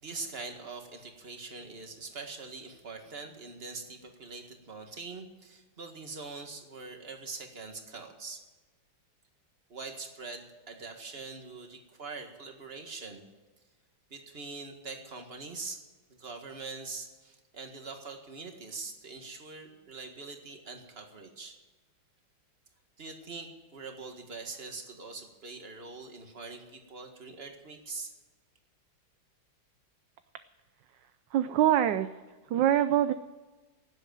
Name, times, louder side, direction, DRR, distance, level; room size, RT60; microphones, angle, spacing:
voice 1, 0.0-8.4 9.7-13.3 14.1-15.8 16.1-21.6 23.0-28.1, right 4 dB, 30° right, 4 dB, 1.9 m, -43 dB
voice 2, 31.3-32.1 32.5-33.1, right 11 dB, 70° right, 11 dB, 1.2 m, -24 dB
17.5 x 8.0 x 9.2 m, 1.2 s
omnidirectional pair, 2.2 m